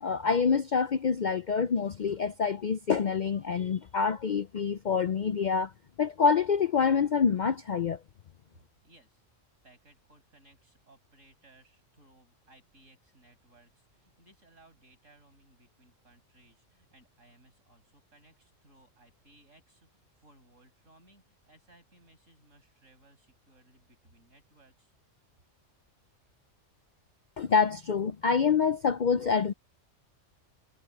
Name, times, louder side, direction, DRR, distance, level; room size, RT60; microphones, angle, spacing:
voice 1, 0.0-5.7 6.0-8.0 27.4-29.5, left 6 dB, 55° left, 0.5 m, -26 dB
voice 2, 8.8-9.2 9.6-24.9, right 1 dB, 75° right, 7.1 m, -61 dB
omnidirectional pair, 1.3 m